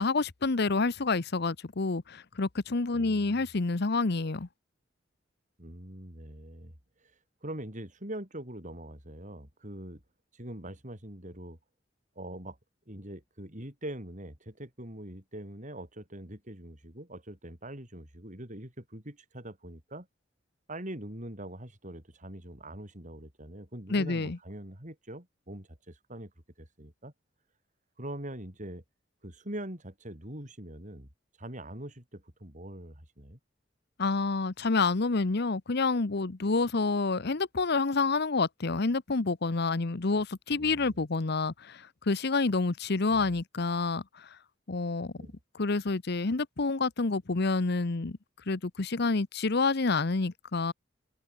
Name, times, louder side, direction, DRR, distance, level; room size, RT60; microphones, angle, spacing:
voice 1, 0.0-4.5 23.9-24.4 34.0-44.3 44.7-45.1 45.6-48.2 48.5-50.7, left 3 dB, 60° left, 0.9 m, -28 dB
voice 2, 2.9-3.5 5.6-6.7 7.0-10.0 10.3-11.6 12.2-12.6 12.9-20.1 20.7-26.3 26.6-27.1 28.0-28.8 29.2-31.1 31.4-33.4 40.5-41.0 43.1-43.4 45.2-45.3, right 1 dB, 40° right, 7.4 m, -43 dB
head